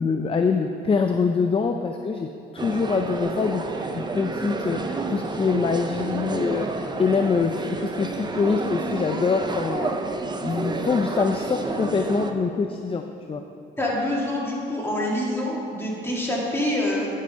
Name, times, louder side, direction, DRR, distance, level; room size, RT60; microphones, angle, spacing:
voice 1, 0.0-2.3 2.5-10.0 10.4-13.4, left 5 dB, 30° left, 5 dB, 0.5 m, -25 dB
sound 1, 2.6-12.3, right 3 dB, 20° right, 0.7 m, -30 dB
voice 2, 13.8-17.1, left 1 dB, 10° left, -5 dB, 2.5 m, -26 dB
11.5 x 5.6 x 5.1 m, 2.5 s
cardioid pair, 90°, 20 cm